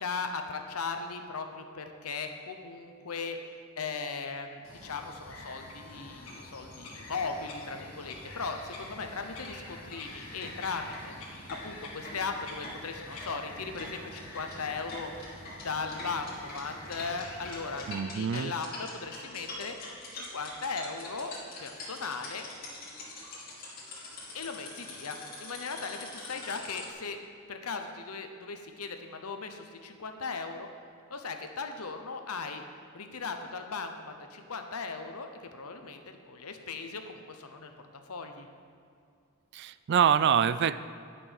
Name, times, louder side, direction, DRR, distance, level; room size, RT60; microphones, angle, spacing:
voice 1, 0.0-3.4 3.8-15.1 15.6-19.8 20.1-22.4 24.3-27.2 27.5-30.7 31.1-32.6 32.9-37.7 38.1-38.5, left 4 dB, 85° left, 6 dB, 0.9 m, -38 dB
Bird vocalization bird call bird song, 4.6-17.9, left 2 dB, 65° left, 2.0 m, -46 dB
sound 1, 9.0-9.1 9.4-9.6 9.9-10.0 10.4-26.9, left 2 dB, 45° left, 2.4 m, -44 dB
voice 2, 17.9-18.5 39.5-40.8, right 8 dB, 50° right, 15 dB, 0.3 m, -25 dB
11.0 x 6.1 x 6.4 m, 2.4 s
head